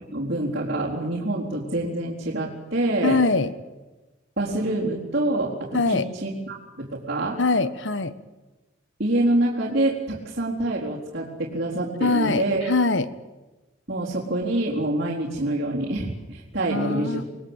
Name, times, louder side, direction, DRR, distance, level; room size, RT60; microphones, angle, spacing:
voice 1, 0.1-3.2 4.4-7.4 9.0-12.7 13.9-17.2, right 1 dB, 55° right, -7 dB, 4.2 m, -26 dB
voice 2, 3.0-3.5 5.7-6.1 7.4-8.1 12.0-13.1 16.7-17.2, left 3 dB, 65° left, 13 dB, 1.3 m, -22 dB
28.0 x 20.0 x 8.2 m, 1.1 s
head